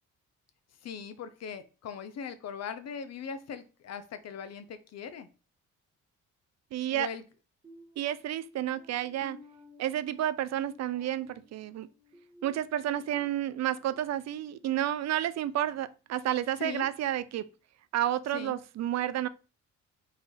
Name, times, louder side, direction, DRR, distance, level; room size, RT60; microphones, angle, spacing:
voice 1, 0.8-5.3 6.9-7.2 16.6-16.9 18.3-18.5, left 7 dB, 60° left, 0.7 m, -40 dB
voice 2, 6.7-7.1 8.0-9.4 9.8-11.9 12.4-17.5 17.9-19.3, right 12 dB, 60° right, 0.5 m, -31 dB
sound 1, 7.6-13.3 13.7-14.0 14.5-14.7, left 2 dB, 20° right, 0.8 m, -55 dB
4.0 x 2.6 x 4.8 m
cardioid pair, 90°, 30 cm